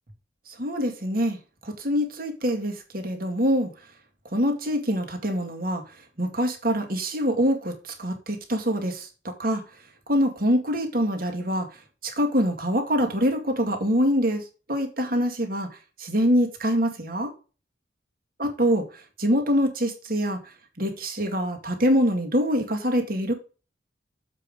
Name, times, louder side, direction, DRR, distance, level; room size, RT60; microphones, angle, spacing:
voice 1, 0.5-1.4 1.6-3.7 4.3-5.8 6.2-9.6 10.1-11.7 12.0-14.4 14.7-15.7 16.0-17.3 18.4-18.8 19.2-20.4 20.8-23.3, equal, 55° right, 2.1 m, -24 dB
7.5 x 5.4 x 5.1 m
head